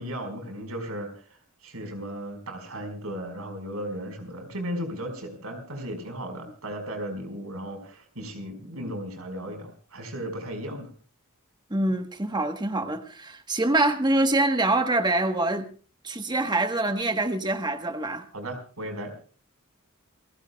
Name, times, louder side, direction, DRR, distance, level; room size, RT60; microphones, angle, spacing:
voice 1, 0.0-10.9 18.3-19.1, equal, 85° right, 5.1 m, -36 dB
voice 2, 11.7-15.7 16.0-18.2, right 2 dB, 20° right, 1.3 m, -25 dB
28.5 x 15.5 x 2.3 m
head